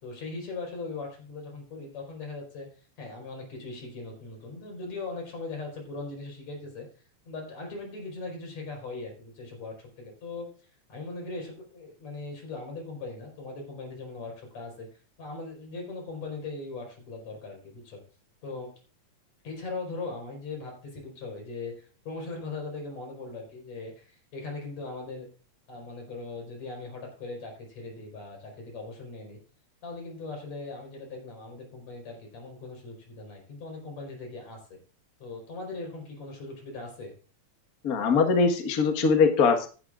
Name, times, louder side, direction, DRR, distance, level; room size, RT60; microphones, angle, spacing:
voice 1, 0.0-2.7 3.0-6.9 7.3-10.5 10.9-14.9 15.2-18.0 18.4-18.7 19.4-25.3 25.7-29.4 29.8-34.8 35.2-37.1, left 3 dB, 65° left, 1 dB, 5.7 m, -39 dB
voice 2, 37.8-39.7, left 5 dB, 40° left, 5 dB, 1.6 m, -22 dB
15.0 x 11.5 x 2.5 m, 0.37 s
omnidirectional pair, 3.3 m